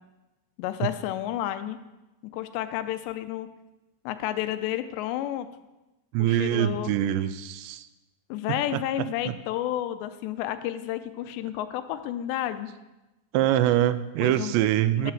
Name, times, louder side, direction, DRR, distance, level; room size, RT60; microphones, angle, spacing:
voice 1, 0.6-1.8 2.2-3.5 4.1-5.5 6.2-6.9 8.3-12.7 14.2-14.6 15.0-15.1, left 12 dB, 90° left, 10 dB, 2.9 m, -31 dB
voice 2, 6.1-7.9 8.7-8.8 13.3-15.1, right 12 dB, 85° right, 13 dB, 2.8 m, -24 dB
11.5 x 5.7 x 7.6 m, 1.0 s
omnidirectional pair, 5.0 m